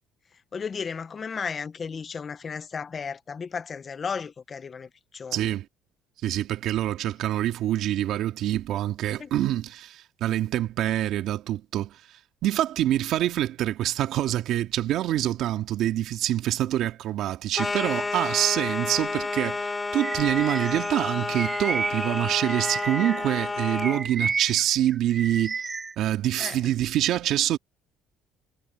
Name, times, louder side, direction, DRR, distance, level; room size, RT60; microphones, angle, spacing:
voice 1, 0.5-5.5 9.2-9.3 26.4-26.6, left 6 dB, 35° left, 1.0 m, -34 dB
voice 2, 5.3-5.7 6.2-12.0 12.4-25.6 26.0-27.6, right 13 dB, 70° right, 2.1 m, -26 dB
sound 1, 17.5-24.1, left 3 dB, 20° left, 3.7 m, -30 dB
Bird vocalization bird call bird song, 20.0-23.3 23.7-25.9, right 5 dB, 30° right, 1.6 m, -32 dB
supercardioid pair, 85°, 0 cm